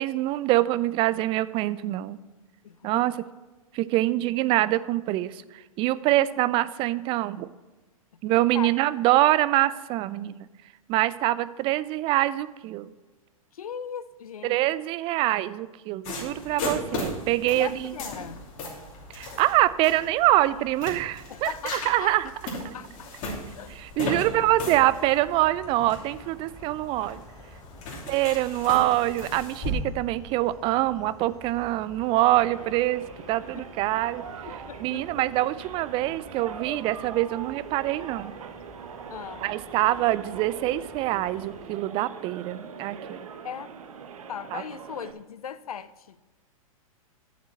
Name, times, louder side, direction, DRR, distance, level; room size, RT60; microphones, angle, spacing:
voice 1, 0.0-2.2 2.8-3.1 3.7-7.5 8.2-10.5 10.9-12.9 14.4-17.9 19.1-22.3 23.8-27.2 28.1-34.2 34.8-38.3 39.4-43.3 44.5-44.6, right 16 dB, 30° right, 16 dB, 0.4 m, -25 dB
voice 2, 2.6-3.1 8.5-8.7 13.5-14.7 17.5-18.5 21.3-22.1 22.7-23.7 24.0-24.3 27.7-28.4 33.5-33.7 34.4-35.3 39.1-39.5 43.4-43.7 44.3-46.2, left 8 dB, 75° left, 16 dB, 0.5 m, -39 dB
sound 1, 16.0-29.7, left 1 dB, 40° left, 2.9 m, -37 dB
sound 2, 24.2-41.7, left 4 dB, 20° left, 1.0 m, -51 dB
sound 3, 32.3-45.1, right 7 dB, 70° right, 0.9 m, -42 dB
10.0 x 7.3 x 4.4 m, 1.3 s
figure-of-eight pair, 105°, 19 cm